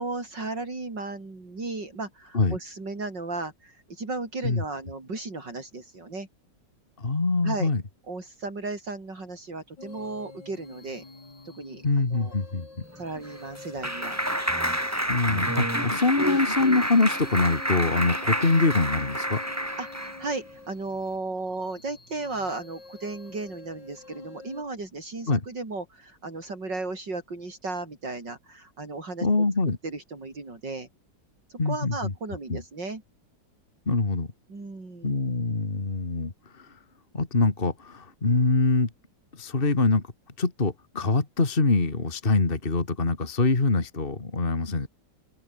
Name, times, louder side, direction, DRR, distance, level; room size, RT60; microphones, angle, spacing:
voice 1, 0.0-6.3 7.4-7.7 8.1-11.0 11.4-11.9 12.1-12.3 13.0-14.2 19.8-29.3 29.8-30.9 31.5-33.0 34.5-35.1, right 3 dB, 70° right, 6.1 m, -35 dB
voice 2, 7.0-7.8 11.8-12.7 15.1-19.4 25.3-25.4 29.2-29.8 31.6-32.1 32.5-32.6 33.9-34.3 35.0-36.8 37.1-38.9 39.3-40.0 40.4-44.9, left 3 dB, 30° left, 2.6 m, -24 dB
sound 1, 9.8-24.6, left 3 dB, 70° left, 6.2 m, -46 dB
Clapping, 13.0-20.3, equal, 10° right, 4.6 m, -29 dB
omnidirectional pair, 2.0 m